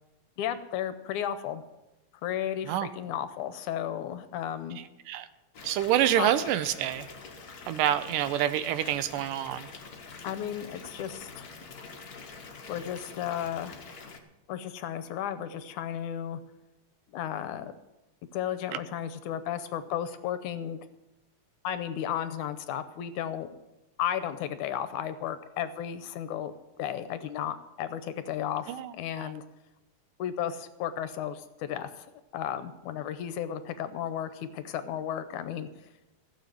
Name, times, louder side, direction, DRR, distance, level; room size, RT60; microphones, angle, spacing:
voice 1, 0.4-1.6 2.2-4.8 6.2-6.3 10.2-11.5 12.7-13.8 14.5-16.4 17.1-17.7 18.3-20.8 21.6-23.5 24.0-29.4 30.2-32.1 32.3-35.7, left 10 dB, 75° left, 12 dB, 2.1 m, -34 dB
voice 2, 4.8-5.3 5.6-7.1 7.7-9.7 28.7-29.3, right 11 dB, 85° right, 13 dB, 2.3 m, -27 dB
Water tap faucet / Bathtub (filling or washing) / Fill (with liquid), 5.5-14.2, left 4 dB, 50° left, 1.0 m, -46 dB
15.5 x 7.2 x 9.1 m, 1.0 s
omnidirectional pair, 3.8 m